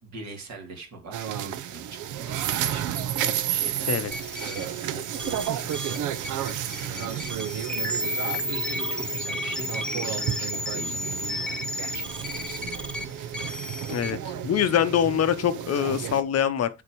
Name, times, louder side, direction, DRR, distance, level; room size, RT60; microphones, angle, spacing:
voice 1, 0.0-3.0 3.5-3.9 4.4-7.7 8.3-15.0, right 3 dB, 65° right, 2.6 m, -43 dB
sound 1, 1.1-16.2, right 10 dB, 80° right, 0.7 m, -32 dB
sound 2, 4.1-14.1, left 1 dB, 5° left, 1.1 m, -33 dB
voice 2, 13.9-16.7, left 9 dB, 55° left, 0.7 m, -24 dB
6.9 x 4.3 x 4.6 m
cardioid pair, 90°, 30 cm